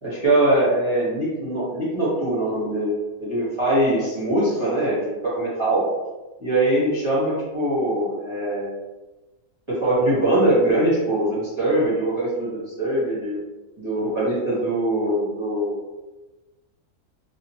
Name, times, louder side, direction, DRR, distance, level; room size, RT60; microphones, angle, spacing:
voice 1, 0.0-5.8 6.4-8.7 9.7-13.4 13.8-15.8, right 1 dB, 20° right, -11 dB, 1.1 m, -22 dB
2.9 x 2.7 x 2.7 m, 1.1 s
omnidirectional pair, 1.7 m